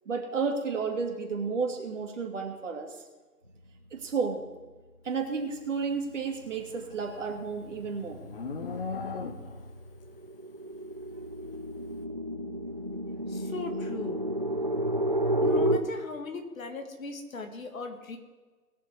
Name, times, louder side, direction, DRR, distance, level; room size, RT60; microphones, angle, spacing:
voice 1, 0.1-3.0 3.9-4.4 5.0-8.2, right 5 dB, 50° right, 3 dB, 2.4 m, -32 dB
sound 1, 6.1-6.4 6.8-15.8, right 1 dB, 30° right, 0.4 m, -32 dB
Livestock farm animals working animals, 6.5-9.8, left 5 dB, 35° left, 1.1 m, -39 dB
voice 2, 13.3-14.2 15.4-18.2, left 3 dB, 55° left, 6 dB, 2.2 m, -37 dB
20.5 x 6.9 x 4.8 m, 1.3 s
hypercardioid pair, 155°, 48 cm